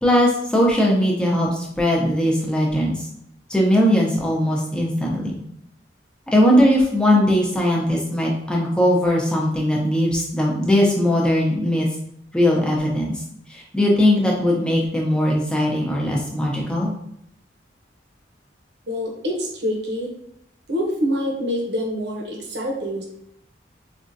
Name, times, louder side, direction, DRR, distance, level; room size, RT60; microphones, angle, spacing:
voice 1, 0.0-2.9 3.5-5.4 6.3-11.9 12.3-13.1 13.5-16.9, left 1 dB, 5° left, -3 dB, 0.7 m, -19 dB
voice 2, 18.9-20.1 20.7-23.0, equal, 75° right, 0 dB, 0.8 m, -26 dB
4.2 x 2.4 x 2.6 m, 0.75 s
head